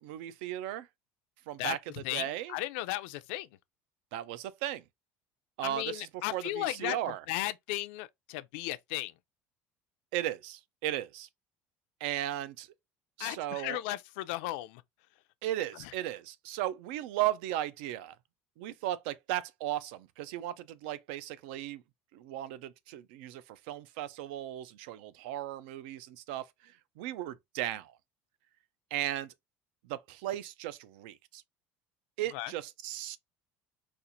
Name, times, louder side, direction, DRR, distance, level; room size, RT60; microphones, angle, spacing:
voice 1, 0.0-0.9 1.5-1.8 2.1-2.6 4.1-4.8 5.6-7.2 10.1-11.3 12.0-12.7 13.2-13.8 15.4-18.2 18.6-21.8 22.1-28.0 28.9-29.3 29.8-31.4 32.2-33.2, right 13 dB, 85° right, 0.4 m, -36 dB
voice 2, 1.6-3.5 5.6-9.1 13.2-14.8 15.8-15.9 32.3-32.5, left 16 dB, 80° left, 0.4 m, -36 dB
4.2 x 2.4 x 2.5 m
cardioid pair, 175°, 6 cm